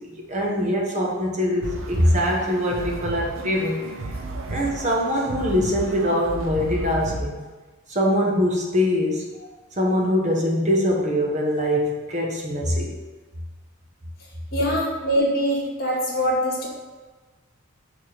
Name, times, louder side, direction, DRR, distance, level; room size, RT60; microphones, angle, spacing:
voice 1, 0.0-3.8 4.5-7.3 7.9-9.2 9.8-12.9, equal, 35° right, -1 dB, 1.1 m, -23 dB
sound 1, 1.6-7.2, right 2 dB, 85° right, 0.7 m, -33 dB
voice 2, 14.5-16.7, equal, 50° left, -3 dB, 2.0 m, -23 dB
6.6 x 3.7 x 5.9 m, 1.3 s
head